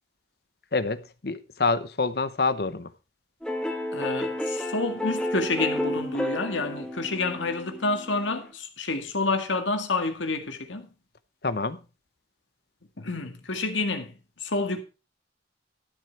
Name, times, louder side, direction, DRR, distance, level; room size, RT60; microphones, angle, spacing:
voice 1, 0.7-2.9 11.4-11.8, left 3 dB, 55° left, 0.8 m, -27 dB
sound 1, 3.4-8.5, left 1 dB, 5° left, 1.4 m, -31 dB
voice 2, 3.9-10.9 13.0-14.1 14.4-14.8, left 3 dB, 90° left, 1.9 m, -29 dB
12.5 x 8.6 x 4.6 m
head